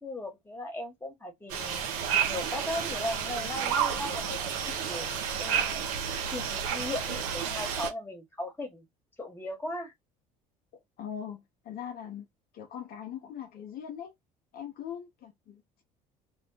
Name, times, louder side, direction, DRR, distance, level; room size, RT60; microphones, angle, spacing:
voice 1, 0.0-1.8 2.3-5.8 6.3-8.9 9.2-9.9, left 1 dB, 10° left, 1.2 m, -37 dB
sound 1, 1.5-7.9, right 8 dB, 85° right, 0.7 m, -31 dB
voice 2, 11.0-12.3 12.5-14.1 14.5-15.8, left 9 dB, 55° left, 0.5 m, -41 dB
2.2 x 2.1 x 3.7 m
hypercardioid pair, 75°, 18 cm